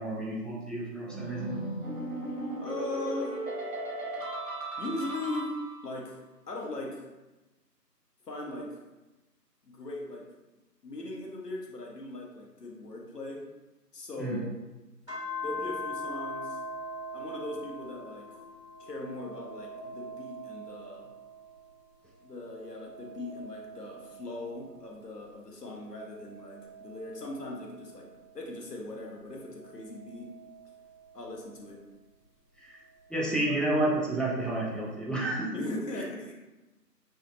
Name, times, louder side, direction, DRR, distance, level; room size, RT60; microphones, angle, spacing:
voice 1, 0.0-1.6 14.2-14.4 32.6-32.8 33.1-35.8, right 1 dB, ahead, -5 dB, 0.4 m, -30 dB
sound 1, 1.1-6.0, right 2 dB, 55° right, 0.8 m, -36 dB
voice 2, 2.6-3.4 4.8-5.5 5.8-6.2 6.5-7.1 8.3-8.8 9.6-10.3 10.8-13.4 13.9-14.6 15.4-16.6 17.1-18.3 18.8-21.1 22.2-28.1 28.3-30.3 31.1-31.8 33.5-33.6 35.5-36.3, left 2 dB, 70° left, -1 dB, 0.8 m, -39 dB
sound 2, 15.1-21.8 22.2-25.1 25.7-28.5 29.3-31.7 33.1-34.1, left 1 dB, 40° left, 1.0 m, -43 dB
2.9 x 2.4 x 2.5 m, 1.1 s
figure-of-eight pair, 180°, 50 cm